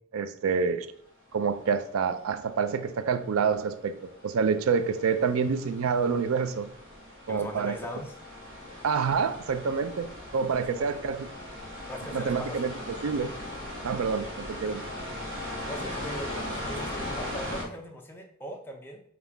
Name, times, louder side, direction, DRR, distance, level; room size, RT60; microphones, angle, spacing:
voice 1, 0.1-0.9 1.3-4.0 4.2-6.7 7.3-7.8 8.8-10.1 10.3-11.3 12.1-12.7 13.0-13.3 13.8-14.8, right 5 dB, 75° right, 11 dB, 0.4 m, -27 dB
sound 1, 1.5-17.6, left 1 dB, 60° right, 1.0 m, -39 dB
voice 2, 7.3-8.2 10.7-11.0 11.9-13.0 15.7-19.0, equal, 10° left, 1 dB, 0.5 m, -40 dB
5.4 x 2.4 x 3.4 m, 0.68 s
head